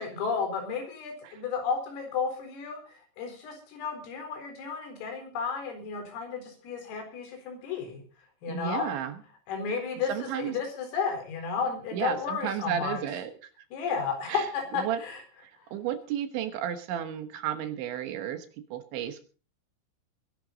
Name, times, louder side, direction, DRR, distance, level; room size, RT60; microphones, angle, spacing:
voice 1, 0.0-8.0 8.4-8.9 9.5-13.0 13.7-15.2, left 5 dB, 75° left, 5 dB, 6.8 m, -33 dB
voice 2, 8.5-9.2 10.1-10.5 11.9-13.3 14.3-14.5 14.7-15.0 15.4-18.5 18.7-19.2, right 9 dB, 70° right, 9 dB, 3.2 m, -33 dB
22.0 x 11.5 x 4.0 m, 0.38 s
omnidirectional pair, 6.0 m